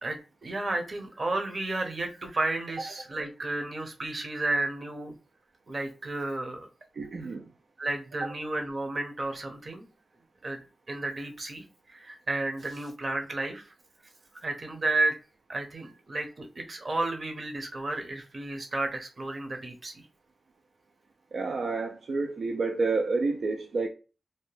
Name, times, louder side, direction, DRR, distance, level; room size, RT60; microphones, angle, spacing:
voice 1, 0.0-5.2 5.7-6.7 7.8-9.9 10.4-13.7 14.4-15.2 15.5-20.0, right 2 dB, 50° right, 0.8 m, -32 dB
voice 2, 6.9-7.4 21.3-23.9, right 3 dB, 70° right, 0.3 m, -29 dB
2.7 x 2.1 x 3.1 m
cardioid pair, 55°, 0 cm